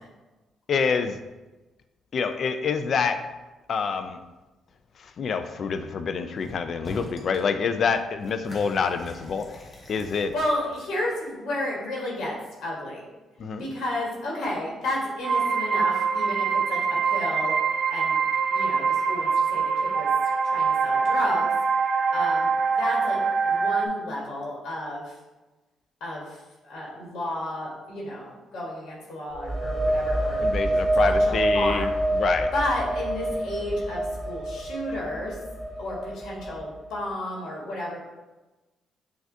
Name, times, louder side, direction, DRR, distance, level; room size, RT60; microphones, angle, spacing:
voice 1, 0.7-1.2 2.1-3.2 3.7-4.2 5.2-9.5 9.9-10.3 13.4-13.7 30.4-32.5, left 5 dB, 55° left, 9 dB, 0.3 m, -27 dB
sound 1, 6.4-6.6 6.8-7.5 7.8-11.1, left 1 dB, 30° left, 0.8 m, -43 dB
voice 2, 10.3-13.1 13.6-17.6 17.9-18.2 18.5-20.1 20.4-21.5 22.1-25.1 26.0-30.4 30.7-31.9 32.5-35.4 35.8-38.0, left 1 dB, 80° left, -4 dB, 1.2 m, -32 dB
sound 2, 15.2-23.9, right 5 dB, 55° right, 0.3 m, -24 dB
sound 3, 29.3-36.9, right 1 dB, 20° right, 1.0 m, -27 dB
6.0 x 2.3 x 2.6 m, 1.1 s
cardioid pair, 90°, 0 cm